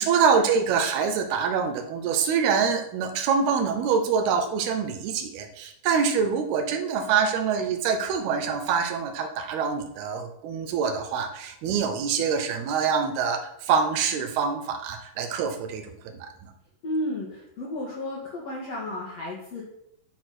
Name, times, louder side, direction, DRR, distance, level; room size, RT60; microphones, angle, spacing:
voice 1, 0.0-16.5, right 6 dB, 85° right, 5 dB, 3.1 m, -25 dB
voice 2, 16.8-19.6, left 1 dB, 50° left, -7 dB, 2.8 m, -32 dB
11.0 x 4.8 x 5.9 m, 0.77 s
omnidirectional pair, 4.4 m